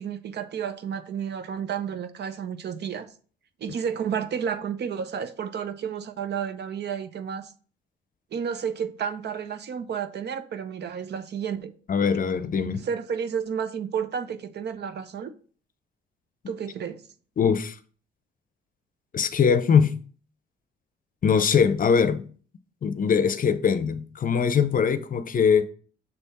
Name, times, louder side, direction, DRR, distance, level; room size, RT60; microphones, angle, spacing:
voice 1, 0.0-3.1 3.6-7.5 8.3-11.7 12.8-15.3 16.5-17.0, right 7 dB, 60° right, 0.7 m, -31 dB
voice 2, 11.9-12.8 17.4-17.8 19.1-19.9 21.2-22.2 22.8-25.7, left 6 dB, 45° left, 0.6 m, -22 dB
6.8 x 3.5 x 4.2 m
cardioid pair, 90°, 20 cm